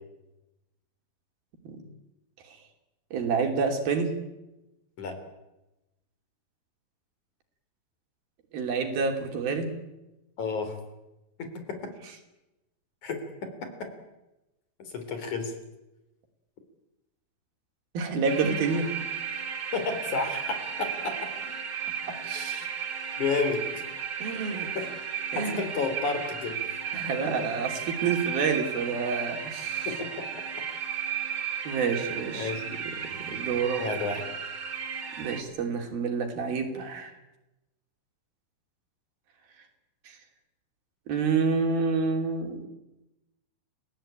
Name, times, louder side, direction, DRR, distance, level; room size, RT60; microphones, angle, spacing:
voice 1, 3.1-4.1 8.5-9.7 17.9-18.9 22.1-22.7 24.2-24.7 25.3-25.6 26.9-29.9 31.6-32.5 32.8-33.8 35.2-37.1 40.1-40.2 41.1-42.7, right 5 dB, 85° right, 5 dB, 4.9 m, -28 dB
voice 2, 10.4-10.8 11.4-11.9 13.0-13.1 13.8-13.9 14.8-15.5 19.7-21.2 22.1-22.4 23.2-23.6 24.8-24.9 25.4-26.6 29.9-30.3 32.3-32.6 33.8-34.3, left 4 dB, 55° left, 7 dB, 5.0 m, -31 dB
sound 1, 18.3-35.4, right 7 dB, 40° right, 2.8 m, -34 dB
29.5 x 18.0 x 8.9 m, 0.97 s
omnidirectional pair, 4.1 m